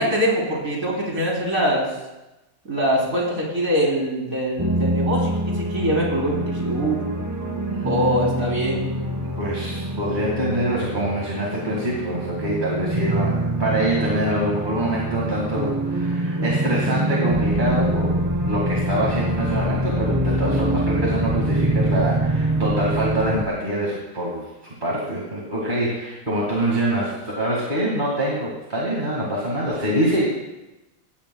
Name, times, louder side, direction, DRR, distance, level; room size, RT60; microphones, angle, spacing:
voice 1, 0.0-1.9 2.7-7.1 7.9-8.9, equal, 75° right, -3 dB, 3.8 m, -23 dB
sound 1, 4.6-23.5, right 1 dB, 20° right, 0.5 m, -25 dB
voice 2, 9.4-30.3, right 1 dB, 35° right, -4 dB, 2.1 m, -25 dB
17.0 x 13.5 x 2.3 m, 1.0 s
omnidirectional pair, 1.4 m